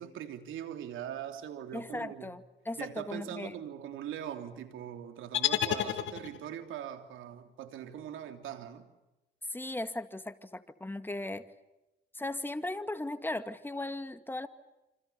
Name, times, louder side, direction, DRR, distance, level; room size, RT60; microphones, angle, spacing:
voice 1, 0.0-2.4 2.7-8.9, right 10 dB, 85° right, 3.2 m, -41 dB
voice 2, 1.7-3.5 9.5-11.5 12.1-14.5, left 2 dB, 10° left, 2.1 m, -37 dB
sound 1, 5.3-6.6, left 11 dB, 75° left, 2.2 m, -31 dB
28.0 x 26.5 x 7.0 m
cardioid pair, 90°, 20 cm